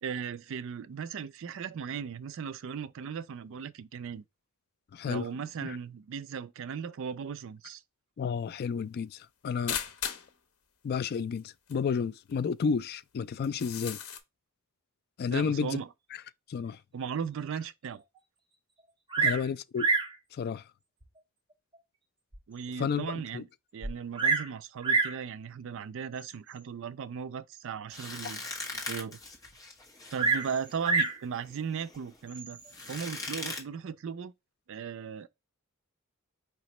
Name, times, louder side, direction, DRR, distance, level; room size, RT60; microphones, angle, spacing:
voice 1, 0.0-4.2 5.0-7.8 15.3-15.9 16.9-18.0 19.2-19.3 22.5-23.5 23.7-28.4 28.7-29.2 30.1-32.6 32.9-34.3 34.7-35.3, right 6 dB, 65° right, 0.4 m, -37 dB
voice 2, 4.9-5.3 5.6-5.8 8.2-9.8 10.8-14.0 15.2-15.8 16.5-16.8 19.2-19.9 20.3-20.6 22.8-23.4, left 6 dB, 45° left, 0.3 m, -31 dB
sound 1, 9.7-10.3 11.4-11.5 11.7-11.8 12.3-12.4 13.4-14.2, left 8 dB, 85° left, 0.8 m, -36 dB
Bird vocalization bird call bird song, 19.1-19.5 19.8-20.2 21.0-21.1 21.7-21.8 22.3-22.4 22.6-22.7 23.8-24.5 24.8-25.2 26.2-26.5 30.2-31.2 32.3-32.7, right 4 dB, 25° right, 0.8 m, -27 dB
sound 2, 27.9-33.6, left 2 dB, 15° left, 1.2 m, -41 dB
5.0 x 3.0 x 3.0 m
head